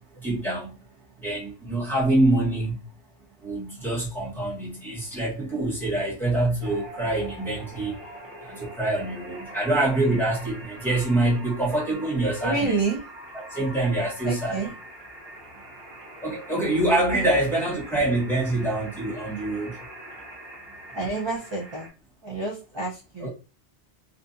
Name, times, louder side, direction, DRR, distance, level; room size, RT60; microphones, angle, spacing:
voice 1, 0.2-0.7 1.2-2.8 3.4-7.9 8.5-12.8 13.3-14.7 16.2-19.7 23.2-23.3, right 2 dB, ahead, 1.0 m, -25 dB
sound 1, 6.6-21.9, right 1 dB, 60° right, 1.2 m, -43 dB
voice 2, 12.4-13.0 14.2-14.7 17.1-17.3 20.9-21.9 22.2-23.3, right 3 dB, 30° right, 0.5 m, -28 dB
2.6 x 2.4 x 2.5 m
omnidirectional pair, 1.2 m